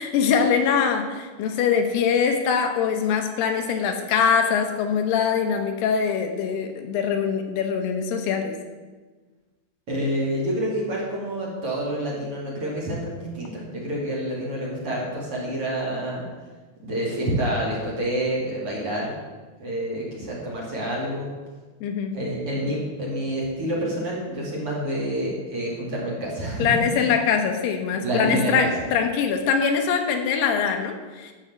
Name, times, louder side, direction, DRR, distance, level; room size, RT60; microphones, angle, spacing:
voice 1, 0.0-8.6 21.8-22.2 26.6-31.3, left 6 dB, 80° left, 5 dB, 3.0 m, -23 dB
voice 2, 9.9-16.2 16.8-19.1 19.6-21.3 22.1-27.1 28.0-28.7, right 1 dB, 40° right, -5 dB, 2.9 m, -28 dB
12.5 x 5.6 x 7.8 m, 1.3 s
omnidirectional pair, 4.8 m